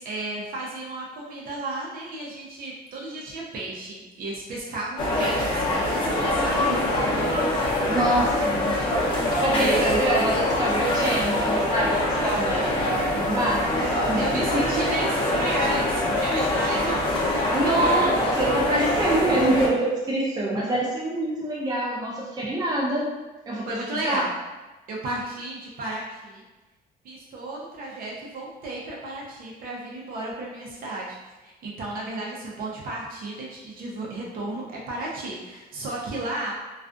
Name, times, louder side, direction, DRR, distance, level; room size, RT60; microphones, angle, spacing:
voice 1, 0.0-6.8 9.5-10.0 14.2-17.0 23.7-24.3 24.9-26.4 27.0-36.5, right 2 dB, 60° right, -4 dB, 0.7 m, -33 dB
sound 1, 5.0-19.7, left 1 dB, 30° left, 0.7 m, -24 dB
voice 2, 7.9-8.7 9.3-12.9 13.1-15.1 17.5-23.1 23.5-24.2, right 1 dB, 25° right, -4 dB, 0.6 m, -26 dB
2.3 x 2.3 x 2.5 m, 1.1 s
cardioid pair, 110°, 17 cm